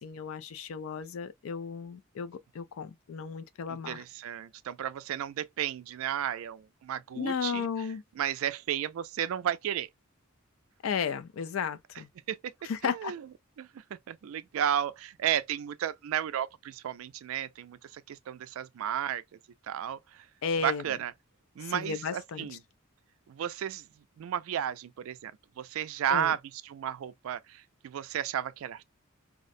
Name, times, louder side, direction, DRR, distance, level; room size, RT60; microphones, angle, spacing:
voice 1, 0.0-4.0 7.2-8.0 10.8-12.1 12.6-13.1 20.4-20.8 21.6-22.5 26.1-26.3, left 6 dB, 70° left, 0.4 m, -34 dB
voice 2, 3.7-7.9 8.1-9.9 12.3-12.4 12.8-13.3 13.6-19.2 19.7-20.3 20.6-21.1 21.6-22.6 23.3-23.9 24.2-28.8, right 10 dB, 70° right, 0.3 m, -33 dB
2.4 x 2.1 x 2.5 m
head